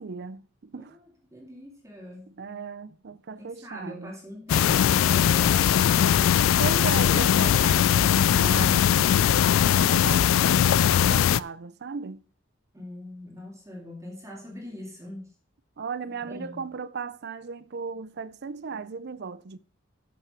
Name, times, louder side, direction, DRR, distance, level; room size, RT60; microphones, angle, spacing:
voice 1, 0.0-1.0 2.3-4.1 6.6-10.3 10.9-12.2 15.8-19.6, right 5 dB, 55° right, 0.5 m, -36 dB
voice 2, 0.7-2.3 3.4-6.3 12.7-15.3 16.3-16.6, left 1 dB, 15° right, 2.6 m, -41 dB
sound 1, 4.5-11.4, left 9 dB, 75° left, 0.3 m, -20 dB
7.7 x 6.6 x 6.0 m
head